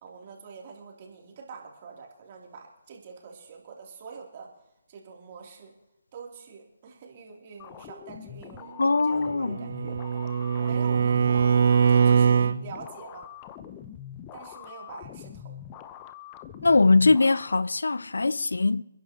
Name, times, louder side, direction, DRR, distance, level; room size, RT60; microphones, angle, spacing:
voice 1, 0.0-4.5 4.9-5.7 6.1-10.0 10.6-11.6 11.9-13.3 14.3-15.5, right 5 dB, 35° right, 3.0 m, -45 dB
sound 1, 7.6-17.6, left 10 dB, 25° left, 0.8 m, -44 dB
voice 2, 8.8-9.6 16.6-18.8, left 3 dB, 75° left, 0.5 m, -21 dB
Bowed string instrument, 9.2-12.6, right 6 dB, 55° right, 0.6 m, -22 dB
29.0 x 10.5 x 3.0 m
figure-of-eight pair, 145°, 0 cm